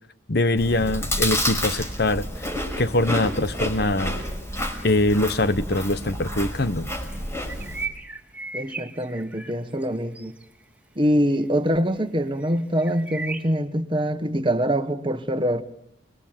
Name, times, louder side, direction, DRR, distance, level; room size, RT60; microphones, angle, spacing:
voice 1, 0.3-2.3 2.8-4.2 4.8-6.9, left 2 dB, 50° left, 1.1 m, -23 dB
Chewing mastication, 0.6-7.9, equal, 15° left, 5.3 m, -29 dB
sound 1, 7.5-9.9 10.1-10.6 11.3-11.4 11.7-11.9 12.4-13.5, right 4 dB, 5° right, 2.0 m, -36 dB
voice 2, 8.5-10.3 10.9-15.6, equal, 25° right, 1.5 m, -24 dB
30.0 x 21.5 x 7.7 m
head